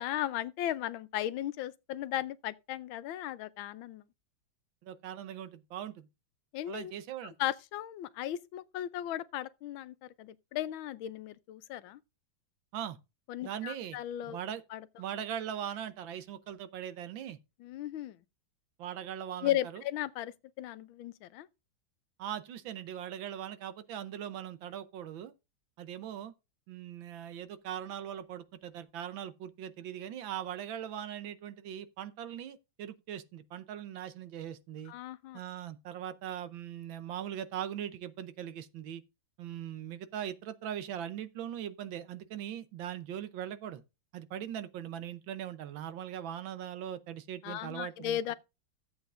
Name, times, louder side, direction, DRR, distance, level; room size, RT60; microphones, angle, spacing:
voice 1, 0.0-4.0 6.5-6.9 7.4-12.0 13.3-14.4 14.7-14.8 17.6-18.2 19.4-21.5 34.9-35.4 47.4-48.3, left 12 dB, 85° left, 1.4 m, -36 dB
voice 2, 4.8-6.1 6.7-7.3 12.7-13.0 13.4-14.0 14.3-14.6 15.0-17.4 18.8-19.8 22.2-25.3 25.8-26.3 26.7-34.9 35.3-39.0 39.4-43.8 44.1-48.3, right 10 dB, 75° right, 1.5 m, -40 dB
14.0 x 8.0 x 2.5 m
omnidirectional pair, 2.2 m